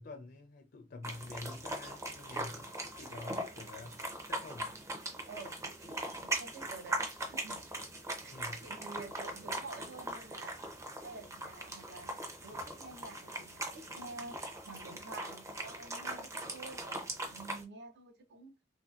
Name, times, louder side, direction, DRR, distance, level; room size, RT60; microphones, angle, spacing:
voice 1, 0.0-3.9 4.3-4.8 8.3-8.7, left 2 dB, 55° left, 0.4 m, -48 dB
sound 1, 1.0-17.6, right 1 dB, 15° right, 0.5 m, -40 dB
voice 2, 5.3-7.6 8.2-10.6 11.0-18.5, right 3 dB, 65° right, 0.6 m, -49 dB
3.1 x 2.7 x 2.3 m
head